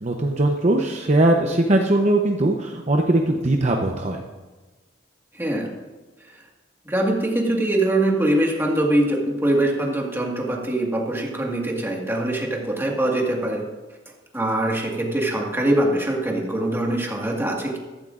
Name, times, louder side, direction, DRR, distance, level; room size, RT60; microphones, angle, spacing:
voice 1, 0.0-4.2, right 1 dB, 40° right, 2 dB, 0.8 m, -20 dB
voice 2, 5.4-5.7 6.8-13.7 14.3-17.8, right 1 dB, 15° right, -1 dB, 1.7 m, -23 dB
14.5 x 13.5 x 2.5 m, 1.3 s
head